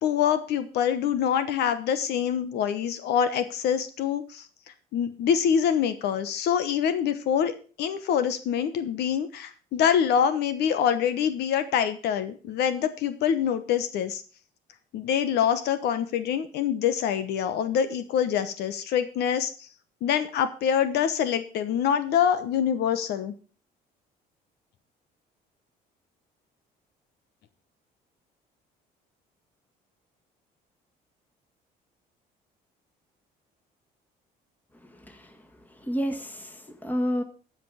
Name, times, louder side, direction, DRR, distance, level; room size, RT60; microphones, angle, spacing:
voice 1, 0.0-4.4 4.9-14.2 14.9-19.5 20.0-23.3, left 8 dB, 75° left, 11 dB, 1.0 m, -25 dB
voice 2, 34.9-35.3 35.8-37.2, equal, 10° left, 5 dB, 1.8 m, -30 dB
14.5 x 5.1 x 5.7 m, 0.39 s
cardioid pair, 110°, 17 cm